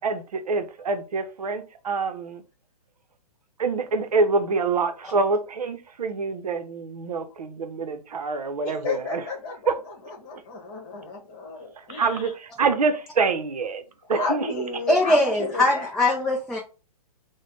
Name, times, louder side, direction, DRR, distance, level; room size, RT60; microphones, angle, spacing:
voice 1, 0.0-2.4 3.6-9.2 9.7-9.8 12.0-13.8 14.1-14.4, right 4 dB, 75° right, 0.6 m, -26 dB
voice 2, 8.6-12.3 14.0-15.9, left 3 dB, 35° left, 1.2 m, -33 dB
voice 3, 14.9-16.6, left 1 dB, 5° left, 0.3 m, -21 dB
3.3 x 2.1 x 3.7 m
hypercardioid pair, 130°, 20 cm